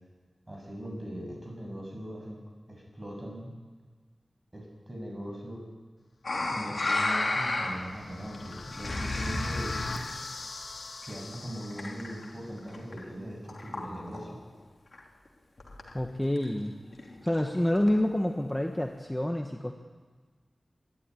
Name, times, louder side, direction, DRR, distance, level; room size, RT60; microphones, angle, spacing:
voice 1, 0.5-2.4 2.7-3.5 4.5-5.6 6.5-9.9 11.1-14.4, equal, 25° right, 0 dB, 7.5 m, -40 dB
sound 1, 6.2-8.0 8.3-10.1 11.0-12.3 12.6-13.1 13.5-14.3 14.6-14.7 14.9-15.0 15.3-15.4 15.6-16.0 16.4-16.5 16.9-18.2 18.8-18.9, left 2 dB, 55° left, 2.9 m, -33 dB
sound 2, 7.4-12.4, left 3 dB, 85° left, 2.0 m, -40 dB
voice 2, 15.9-16.7 17.2-19.7, left 1 dB, 10° left, 3 dB, 1.4 m, -28 dB
23.5 x 12.0 x 9.9 m, 1.4 s
wide cardioid pair, 85°, 0 cm